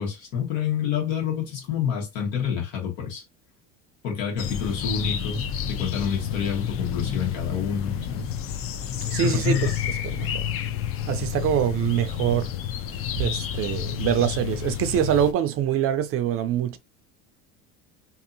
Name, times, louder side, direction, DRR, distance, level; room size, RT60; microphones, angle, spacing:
voice 1, 0.0-3.2 4.0-8.3 9.2-9.7, left 7 dB, 85° left, 1.4 m, -28 dB
sound 1, 4.4-15.3, left 9 dB, 40° left, 0.4 m, -30 dB
voice 2, 9.1-9.6 10.2-10.3 11.1-12.5 13.2-16.8, right 10 dB, 40° right, 0.4 m, -24 dB
2.7 x 2.6 x 2.6 m
supercardioid pair, 120°, 35 cm